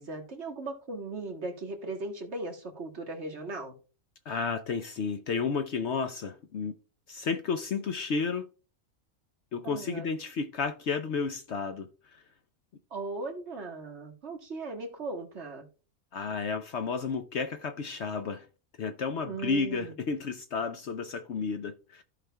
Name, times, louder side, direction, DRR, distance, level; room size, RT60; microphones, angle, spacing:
voice 1, 0.0-3.7 9.6-10.1 12.9-15.6 19.2-20.0, right 2 dB, 50° right, 1.7 m, -38 dB
voice 2, 4.3-6.7 7.1-8.5 9.5-11.9 16.1-18.5 18.8-22.0, left 5 dB, 60° left, 0.8 m, -32 dB
14.5 x 5.1 x 2.2 m
omnidirectional pair, 1.5 m